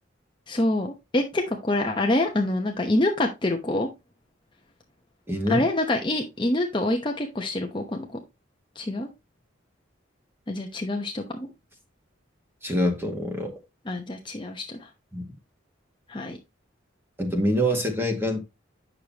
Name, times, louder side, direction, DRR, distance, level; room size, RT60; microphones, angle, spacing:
voice 1, 0.5-3.9 5.5-8.2 8.8-9.1 10.5-11.5 13.9-14.9 16.1-16.4, left 1 dB, 25° left, 0.9 m, -26 dB
voice 2, 5.3-5.6 12.6-13.5 15.1-15.3 17.2-18.4, equal, 10° right, 1.9 m, -25 dB
8.9 x 6.5 x 2.9 m
head